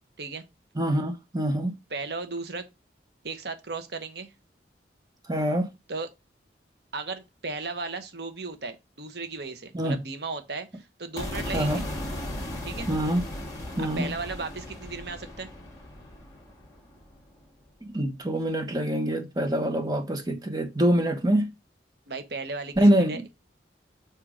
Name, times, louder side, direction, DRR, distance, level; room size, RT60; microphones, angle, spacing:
voice 1, 0.7-1.8 5.3-5.7 9.7-10.0 11.5-11.8 12.9-13.2 13.8-14.1 17.8-21.5 22.8-23.2, right 1 dB, 20° right, 1.1 m, -25 dB
voice 2, 1.9-2.6 3.2-4.3 5.9-6.1 6.9-11.8 12.6-12.9 13.8-15.5 22.1-23.2, right 3 dB, 60° right, 1.1 m, -35 dB
sound 1, 11.2-17.4, left 1 dB, 20° left, 2.0 m, -37 dB
7.4 x 2.8 x 4.9 m
head